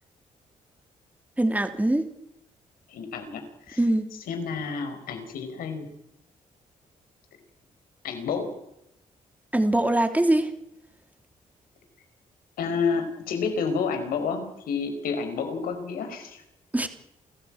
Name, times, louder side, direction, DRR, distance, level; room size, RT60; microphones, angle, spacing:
voice 1, 1.4-2.0 3.8-4.1 9.5-10.5 16.7-16.9, right 1 dB, 10° right, 7 dB, 3.1 m, -22 dB
voice 2, 2.9-3.8 4.3-5.9 8.0-8.5 12.6-16.4, left 5 dB, 90° left, 7 dB, 4.9 m, -30 dB
28.5 x 14.5 x 8.8 m, 0.82 s
cardioid pair, 80°, 15 cm